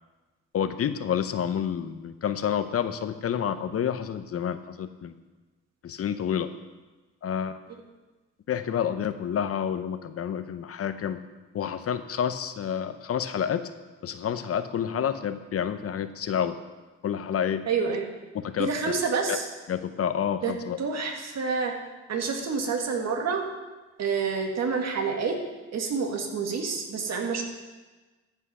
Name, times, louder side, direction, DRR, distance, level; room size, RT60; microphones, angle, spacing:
voice 1, 0.5-5.1 5.8-6.5 7.2-7.6 8.5-11.2 11.5-13.7 14.0-16.6 17.0-17.7 18.4-18.7 19.3-19.4 19.7-20.8, left 8 dB, 50° left, 11 dB, 0.8 m, -29 dB
voice 2, 17.7-18.1 18.6-19.4 20.4-20.5 20.8-21.7 22.1-23.4 24.0-25.4 25.7-27.4, right 5 dB, 60° right, 2 dB, 2.0 m, -28 dB
14.0 x 5.6 x 5.6 m, 1.2 s
cardioid pair, 90°, 30 cm